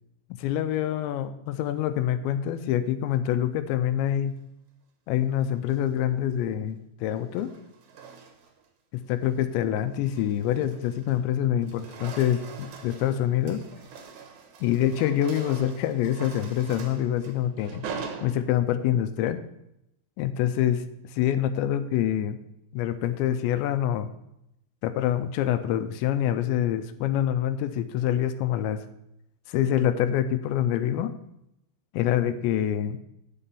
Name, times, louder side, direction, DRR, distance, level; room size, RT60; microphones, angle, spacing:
voice 1, 0.3-4.4 5.1-7.5 8.9-13.6 14.6-17.8 18.2-19.4 20.2-20.8 21.1-22.4 22.7-24.1 24.8-28.8 29.5-31.2 31.9-33.0, left 11 dB, 80° left, 11 dB, 2.8 m, -26 dB
sound 1, 5.5-6.0 7.1-8.7 9.1-9.4 9.8-11.3 11.5-18.9, right 5 dB, 75° right, 1.8 m, -43 dB
9.3 x 5.6 x 6.8 m, 0.82 s
omnidirectional pair, 5.3 m